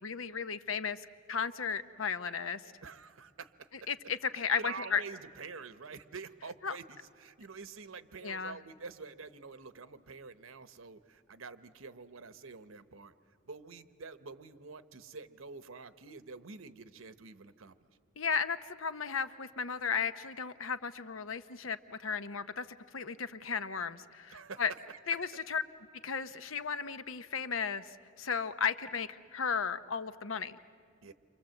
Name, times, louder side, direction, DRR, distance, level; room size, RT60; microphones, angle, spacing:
voice 1, 0.0-2.7 3.9-5.0 6.6-6.7 8.2-8.6 18.2-22.7 22.9-24.7 25.1-25.6 26.0-30.6, left 6 dB, 75° left, 12 dB, 0.8 m, -35 dB
voice 2, 2.8-3.9 4.3-13.1 13.4-17.7 24.3-24.6 24.9-25.2 31.0-31.1, right 4 dB, 80° right, 12 dB, 1.0 m, -47 dB
29.0 x 25.5 x 7.8 m, 2.2 s
head